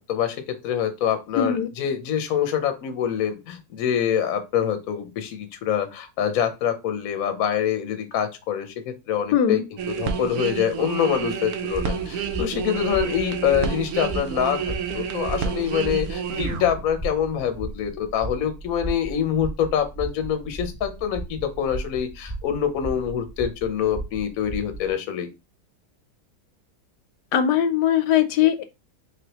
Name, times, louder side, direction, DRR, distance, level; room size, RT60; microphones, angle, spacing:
voice 1, 0.1-25.3, left 9 dB, 65° left, 8 dB, 1.0 m, -25 dB
voice 2, 1.4-1.7 9.3-9.6 27.3-28.6, left 9 dB, 85° left, 10 dB, 1.2 m, -20 dB
sound 1, 9.8-17.2 17.6-17.8, right 7 dB, 70° right, 1.1 m, -29 dB
sound 2, 11.7-24.9, right 2 dB, 10° right, 1.1 m, -36 dB
4.0 x 3.3 x 2.9 m, 0.26 s
omnidirectional pair, 1.7 m